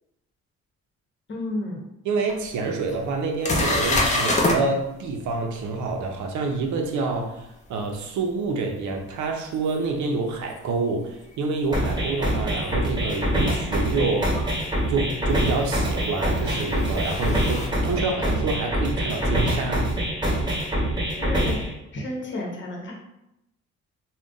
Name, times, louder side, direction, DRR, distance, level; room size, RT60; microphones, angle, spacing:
voice 1, 1.3-1.8 21.0-21.6 21.9-22.9, left 1 dB, 40° left, -1 dB, 0.9 m, -32 dB
voice 2, 2.0-14.4 14.9-19.9, right 3 dB, 75° right, 2 dB, 0.6 m, -27 dB
sound 1, 2.3-2.4 2.9-3.0 3.4-4.6 9.7-9.8 12.6-12.7 14.4-14.5 15.8-17.7, left 2 dB, 25° left, 0.5 m, -25 dB
sound 2, 11.7-21.7, equal, 15° right, 1.0 m, -25 dB
2.5 x 2.2 x 3.7 m, 0.86 s
cardioid pair, 90°, 30 cm